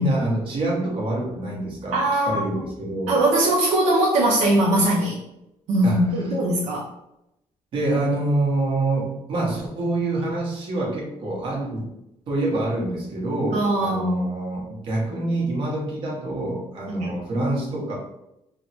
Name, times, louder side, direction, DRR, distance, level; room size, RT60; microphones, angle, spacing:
voice 1, 0.0-3.2 5.8-6.0 7.7-11.9 12.3-17.9, right 2 dB, 45° right, -3 dB, 0.9 m, -26 dB
voice 2, 1.9-2.6 3.1-5.2 5.7-6.8 13.5-14.2 17.0-17.1, right 1 dB, 80° right, -2 dB, 0.5 m, -21 dB
3.3 x 2.0 x 2.8 m, 0.86 s
cardioid pair, 165°, 12 cm